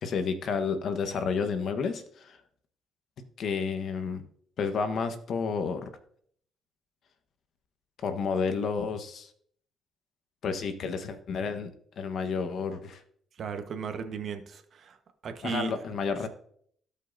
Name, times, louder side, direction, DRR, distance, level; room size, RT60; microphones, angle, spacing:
voice 1, 0.0-2.4 3.4-4.2 4.6-5.9 8.0-9.3 10.4-11.7 12.0-13.0 15.4-16.3, left 5 dB, 65° left, 8 dB, 1.1 m, -30 dB
voice 2, 13.4-15.0 15.2-15.7, right 6 dB, 60° right, 7 dB, 1.1 m, -35 dB
17.0 x 5.6 x 2.6 m, 0.62 s
cardioid pair, 90°, 0 cm